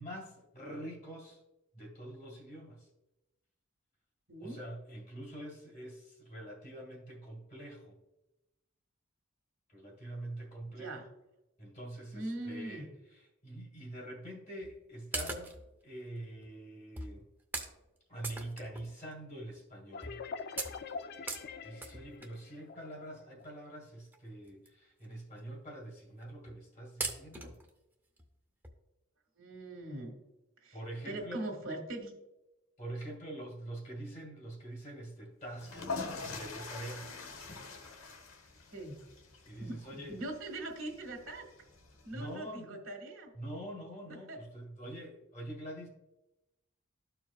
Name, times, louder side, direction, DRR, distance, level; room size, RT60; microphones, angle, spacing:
voice 1, 0.0-1.4 1.7-2.9 4.4-8.0 9.7-10.9 11.6-12.9 13.4-17.2 18.1-20.2 21.6-27.6 30.7-31.4 32.8-35.9 36.2-37.1 39.4-40.2 42.1-42.8 43.4-45.9, right 1 dB, 35° left, -1 dB, 1.8 m, -45 dB
voice 2, 4.3-4.6 10.7-11.1 12.1-12.9 29.4-30.1 30.6-30.8 31.0-32.1 38.7-39.0 39.6-41.5 42.0-43.3 44.1-44.4, right 1 dB, 80° right, 3 dB, 1.6 m, -41 dB
sound 1, 14.6-14.8 15.1-15.7 16.4-16.5 17.0-17.2 17.5-17.8 18.2-19.1 19.5-19.6 20.0-20.2 20.6-22.4 23.4-23.5 24.1-24.2 24.5-24.7 25.0-25.1 25.4-25.5 26.2-26.6 27.0-27.7 28.2-28.3 28.6-28.7, right 2 dB, 10° right, 0.7 m, -40 dB
sound 2, 19.9-23.4, left 5 dB, 50° left, 0.4 m, -44 dB
sound 3, 35.5-42.3, left 4 dB, 80° left, 1.1 m, -44 dB
13.5 x 4.5 x 2.4 m, 0.95 s
head